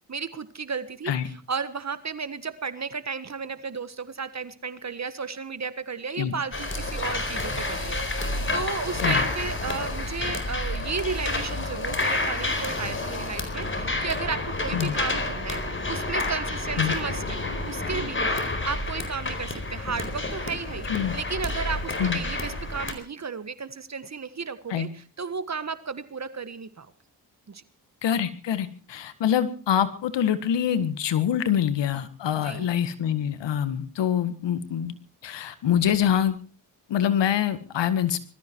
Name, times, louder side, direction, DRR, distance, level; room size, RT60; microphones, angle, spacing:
voice 1, 0.1-26.9 27.5-27.6 32.3-32.7, right 5 dB, 40° right, 13 dB, 1.6 m, -34 dB
sound 1, 6.5-22.9, left 2 dB, 30° left, 4.3 m, -29 dB
voice 2, 28.0-35.0 35.2-36.4 36.9-38.2, left 9 dB, 80° left, 12 dB, 1.9 m, -25 dB
20.5 x 14.0 x 4.7 m, 0.37 s
cardioid pair, 65°, 42 cm